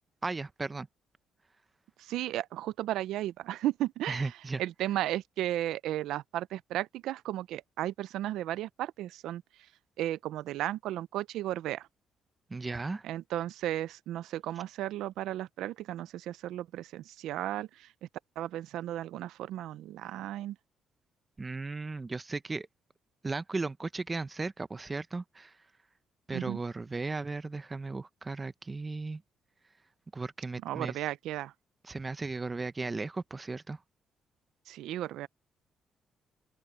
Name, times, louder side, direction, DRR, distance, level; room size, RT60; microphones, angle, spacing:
voice 1, 0.2-0.9 4.1-4.6 12.5-13.0 21.4-22.7 23.2-25.6 26.3-29.2 30.1-30.9 31.8-33.8, right 3 dB, 25° right, 0.8 m, -36 dB
voice 2, 2.0-4.3 4.6-9.4 10.0-11.9 13.0-17.9 18.4-20.6 26.3-26.6 30.6-31.5 34.7-35.3, right 13 dB, 85° right, 0.5 m, -34 dB
open air
cardioid pair, 90°, 0 cm